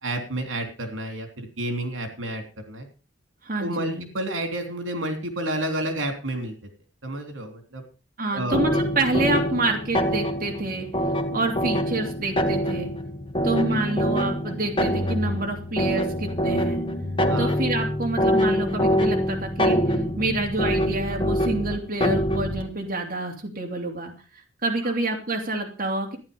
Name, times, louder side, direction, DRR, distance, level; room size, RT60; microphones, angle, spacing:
voice 1, 0.0-2.9 3.6-6.5 7.0-7.8 8.3-8.6 13.7-13.8 17.3-17.6 24.8-24.9, right 1 dB, 85° right, 5 dB, 3.3 m, -30 dB
voice 2, 3.4-4.1 8.2-10.9 11.3-12.9 13.4-16.8 17.4-24.1 24.6-26.2, right 2 dB, 45° right, 1 dB, 2.9 m, -27 dB
sound 1, 8.5-22.7, equal, 25° left, 1.6 m, -25 dB
14.5 x 10.5 x 5.3 m, 0.36 s
head